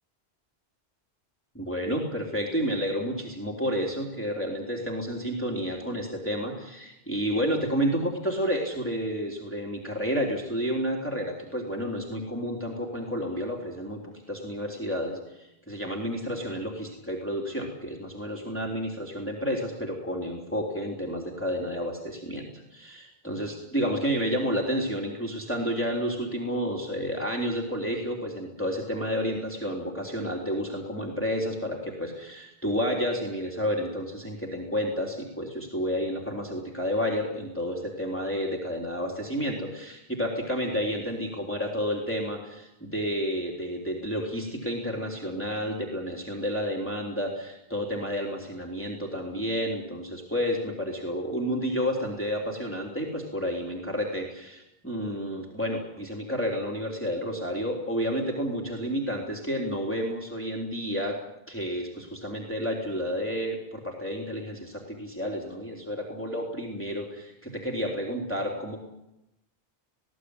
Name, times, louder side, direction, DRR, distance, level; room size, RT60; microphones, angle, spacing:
voice 1, 1.6-14.0 14.3-61.2 61.5-68.8, equal, 10° left, -1 dB, 3.6 m, -30 dB
20.0 x 17.0 x 9.8 m, 0.88 s
omnidirectional pair, 1.1 m